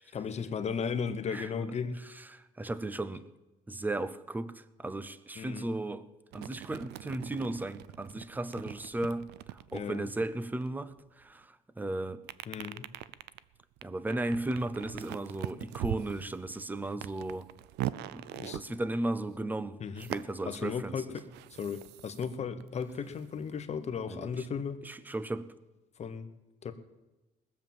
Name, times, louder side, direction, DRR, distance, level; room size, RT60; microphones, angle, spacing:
voice 1, 0.0-2.0 5.4-5.7 9.7-10.1 12.5-12.9 18.3-18.6 19.8-20.1 20.5-24.8 26.0-26.3 26.6-26.7, left 6 dB, 40° left, 1.1 m, -36 dB
voice 2, 1.3-1.7 2.1-3.3 3.7-6.1 6.3-12.2 13.8-17.5 18.1-20.9 24.1-24.5 24.8-25.5, right 2 dB, 10° right, 0.7 m, -36 dB
sound 1, 6.3-11.2 12.2-19.3 20.0-22.3 22.6-23.9, right 14 dB, 85° right, 0.5 m, -42 dB
19.5 x 7.2 x 7.7 m
cardioid pair, 110°, 17 cm